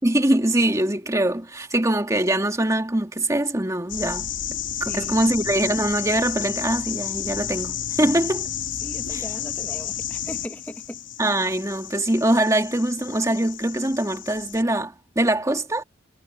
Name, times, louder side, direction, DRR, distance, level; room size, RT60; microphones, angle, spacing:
voice 1, 0.0-4.3 4.8-8.5 9.1-9.2 11.2-15.8, right 1 dB, 15° right, 2.4 m, -23 dB
sound 1, 3.9-14.6, left 10 dB, 80° left, 3.0 m, -32 dB
voice 2, 4.8-5.3 8.0-8.1 8.8-11.0, equal, 10° left, 2.2 m, -38 dB
head